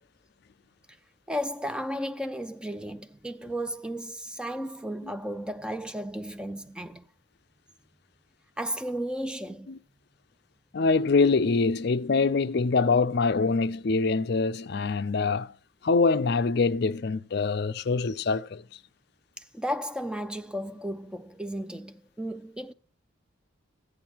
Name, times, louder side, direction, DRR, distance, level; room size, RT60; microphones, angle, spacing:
voice 1, 1.3-7.1 8.6-9.7 19.4-22.7, equal, 5° right, 0.4 m, -34 dB
voice 2, 10.7-15.5 15.8-18.6, left 4 dB, 50° left, 0.4 m, -24 dB
14.5 x 8.9 x 2.9 m
head